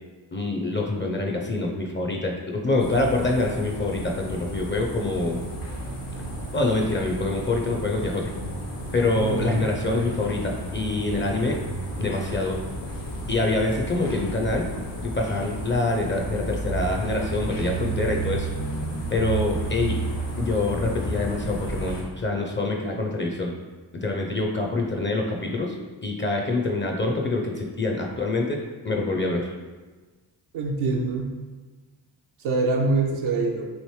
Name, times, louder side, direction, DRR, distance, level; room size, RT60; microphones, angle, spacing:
voice 1, 0.3-5.4 6.5-8.3 8.9-11.6 12.0-12.6 13.3-14.7 15.0-18.5 19.1-20.0 20.4-23.5 23.9-25.8 26.0-28.6 28.8-29.5, left 2 dB, 25° left, 1 dB, 0.4 m, -25 dB
sound 1, 2.8-22.0, right 1 dB, 85° left, 1.0 m, -32 dB
voice 2, 9.2-9.7 30.5-31.3 32.4-33.7, right 3 dB, 75° right, 0 dB, 0.5 m, -25 dB
3.2 x 2.6 x 3.1 m, 1.3 s
supercardioid pair, 45°, 49 cm